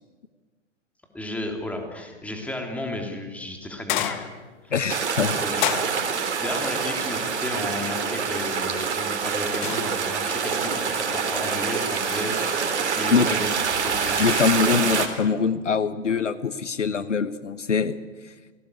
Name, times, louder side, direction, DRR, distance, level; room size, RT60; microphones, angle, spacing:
voice 1, 1.1-4.3 4.6-4.7 5.2-5.8 6.1-14.2, left 1 dB, 5° left, 3 dB, 3.5 m, -33 dB
sound 1, 3.9-4.6 5.6-6.3 9.6-10.3 10.7-11.1 11.8-12.9 14.0-14.9, left 12 dB, 40° left, 1.6 m, -32 dB
voice 2, 4.7-5.4 13.1-13.3 14.2-18.0 18.2-18.3, left 6 dB, 70° left, 13 dB, 1.3 m, -23 dB
sound 2, 4.9-15.1, right 6 dB, 60° right, 3.8 m, -26 dB
29.5 x 19.0 x 8.4 m, 1.4 s
figure-of-eight pair, 115°, 38 cm